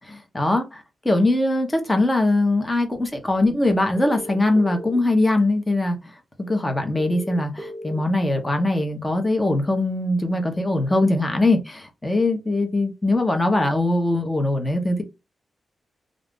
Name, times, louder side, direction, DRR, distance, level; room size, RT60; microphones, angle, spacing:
voice 1, 0.3-6.0 6.5-15.0, left 2 dB, 15° left, 0.8 m, -21 dB
sound 1, 4.0-5.0 7.0-8.0, equal, 10° right, 0.6 m, -36 dB
2.5 x 2.4 x 3.6 m
cardioid pair, 100°, 0 cm